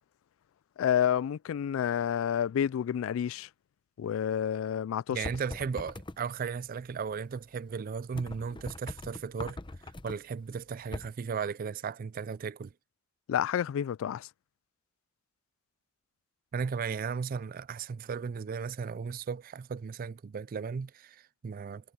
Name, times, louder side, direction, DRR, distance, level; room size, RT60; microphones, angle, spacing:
voice 1, 0.8-3.5 4.0-5.2 13.3-14.3, left 9 dB, 85° left, 0.3 m, -29 dB
voice 2, 5.1-9.6 10.0-12.7 16.5-21.9, right 6 dB, 45° right, 0.4 m, -36 dB
sound 1, 5.2-6.2 8.1-10.2 10.9-11.1, left 2 dB, 25° left, 0.8 m, -41 dB
head